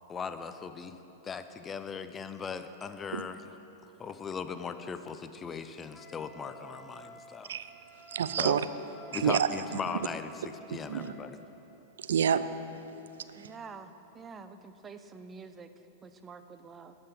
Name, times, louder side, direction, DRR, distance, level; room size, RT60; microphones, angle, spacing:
voice 1, 0.1-1.0 1.2-3.4 4.0-7.6 8.4-8.6 9.1-10.3 10.7-11.4, left 6 dB, 20° left, 0.5 m, -38 dB
Wind instrument woodwind instrument, 5.9-11.4, right 1 dB, 5° left, 1.0 m, -52 dB
voice 2, 8.1-8.6 9.1-9.8 10.9-11.1 12.0-12.8 13.2-13.5, right 8 dB, 75° right, 0.4 m, -29 dB
voice 3, 13.4-17.0, right 5 dB, 20° right, 0.6 m, -48 dB
13.0 x 5.8 x 6.1 m
hypercardioid pair, 105°, 0 cm